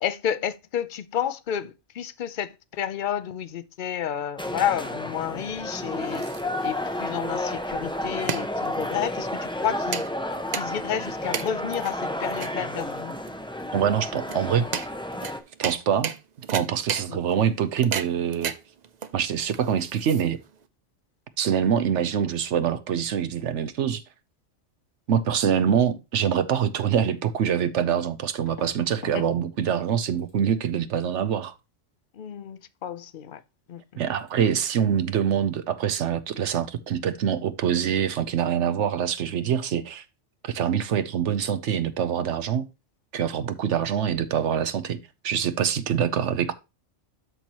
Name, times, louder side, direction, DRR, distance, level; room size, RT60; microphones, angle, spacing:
voice 1, 0.0-6.2 6.6-10.1 10.6-13.2 17.1-17.2 29.1-29.2 32.1-33.4 33.7-34.0, left 9 dB, 55° left, 0.6 m, -31 dB
sound 1, 4.4-15.4, left 1 dB, 5° left, 0.6 m, -31 dB
sound 2, 5.7-20.6, right 7 dB, 50° right, 0.6 m, -36 dB
voice 2, 13.7-14.7 15.6-16.1 16.5-18.5 19.1-20.4 21.4-24.0 25.1-31.5 34.0-40.0 40.4-42.7 43.1-45.0 45.2-46.5, right 8 dB, 75° right, 1.0 m, -25 dB
sound 3, 28.5-29.2 29.5-29.9 30.2-30.4 33.3-33.4 33.7-33.9 34.2-34.3, left 2 dB, 90° left, 2.9 m, -45 dB
12.5 x 4.5 x 2.9 m
omnidirectional pair, 1.2 m